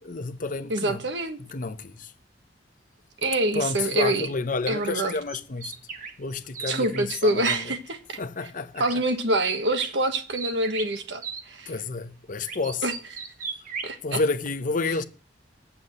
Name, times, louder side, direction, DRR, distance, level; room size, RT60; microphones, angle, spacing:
voice 1, 0.0-1.0 1.5-2.1 3.2-5.7 6.2-7.8 8.2-9.0 11.7-12.9 14.0-15.0, left 3 dB, 45° left, 0.8 m, -30 dB
voice 2, 0.7-1.4 3.2-4.3 4.7-5.1 6.7-8.2 8.8-11.7 12.8-12.9 13.8-14.2, right 2 dB, 70° right, 1.3 m, -26 dB
sound 1, 4.7-7.6 8.7-9.1 9.4-11.4 12.4-13.9, right 5 dB, 45° right, 1.3 m, -37 dB
7.9 x 7.0 x 7.9 m
head